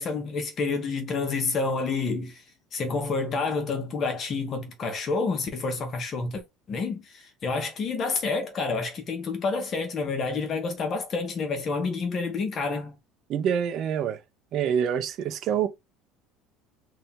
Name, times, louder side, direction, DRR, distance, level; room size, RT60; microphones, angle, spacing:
voice 1, 0.0-2.4 2.7-6.4 6.7-12.9, left 4 dB, 30° left, 0.9 m, -29 dB
voice 2, 13.3-14.2 14.5-15.7, right 8 dB, 45° right, 0.6 m, -26 dB
2.8 x 2.7 x 3.5 m
cardioid pair, 150°, 0 cm